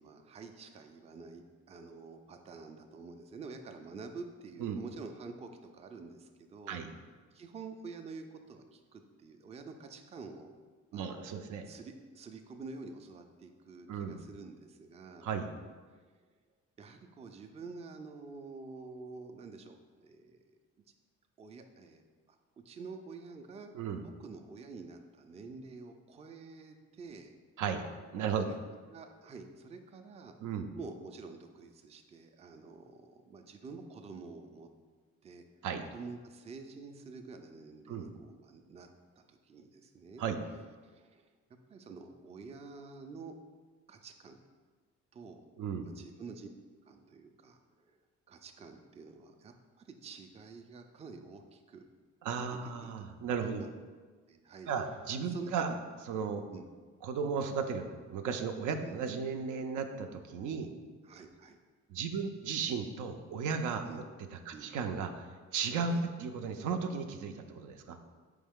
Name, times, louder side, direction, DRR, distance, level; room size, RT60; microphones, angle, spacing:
voice 1, 0.0-6.8 7.3-10.5 10.9-11.1 11.7-15.2 16.8-19.7 20.0-20.4 21.4-22.0 22.3-22.4 22.7-23.7 24.0-27.3 28.4-28.6 28.9-30.3 30.8-34.7 35.2-35.4 35.9-38.9 39.2-40.2 40.8-41.3 41.7-43.4 43.9-44.4 45.1-45.4 45.8-46.5 46.9-48.0 48.3-51.9 52.5-52.9 53.4-53.7 54.3-54.7 55.2-55.8 56.5-56.7 58.8-59.0 61.0-61.6 63.8-64.0 64.5-64.7 65.9-66.0, right 4 dB, 20° right, 5 dB, 0.3 m, -48 dB
voice 2, 10.9-11.7 13.9-14.2 15.2-15.5 23.7-24.0 27.6-27.8 28.1-28.5 30.4-30.7 35.6-35.8 37.9-38.1 40.2-40.4 45.6-45.8 52.2-53.7 54.7-55.7 56.1-56.4 57.0-60.7 61.9-64.0 64.3-65.3 65.5-68.0, right 6 dB, 80° right, 6 dB, 0.5 m, -35 dB
4.5 x 3.2 x 3.5 m, 1.5 s
cardioid pair, 90°, 30 cm